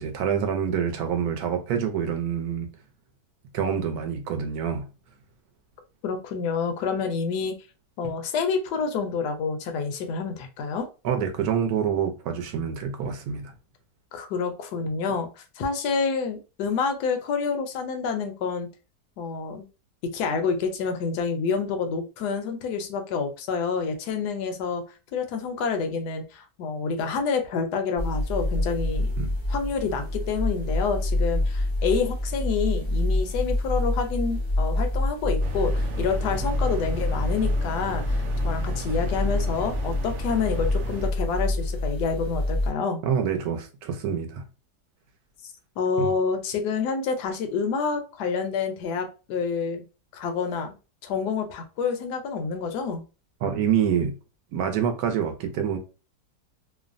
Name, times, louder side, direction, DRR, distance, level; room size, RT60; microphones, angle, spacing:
voice 1, 0.0-2.7 3.5-4.9 11.0-13.5 29.2-29.3 43.0-44.4 46.0-46.1 53.4-54.1 54.5-55.8, right 7 dB, 70° right, 1.0 m, -26 dB
voice 2, 6.0-7.5 8.0-10.9 14.1-18.7 19.2-19.7 20.1-24.8 25.1-29.1 29.5-43.0 45.8-49.8 50.1-50.7 51.0-53.0, left 5 dB, 75° left, 1.2 m, -28 dB
sound 1, 28.0-42.7, left 1 dB, 50° left, 0.3 m, -27 dB
sound 2, 35.4-41.1, right 1 dB, 90° right, 0.6 m, -36 dB
3.1 x 2.0 x 2.5 m
omnidirectional pair, 1.9 m